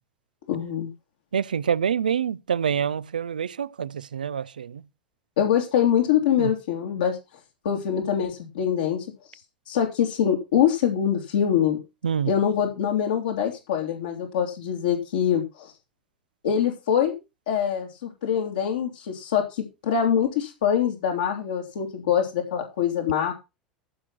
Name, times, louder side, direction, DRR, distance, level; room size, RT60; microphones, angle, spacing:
voice 1, 0.5-0.9 5.4-7.2 7.6-9.0 9.7-11.8 12.3-15.7 16.4-17.2 17.5-23.3, left 9 dB, 75° left, 3.1 m, -24 dB
voice 2, 1.3-4.8 6.4-6.5 12.0-12.3, right 8 dB, 85° right, 0.5 m, -26 dB
14.5 x 6.0 x 5.9 m
hypercardioid pair, 80°, 5 cm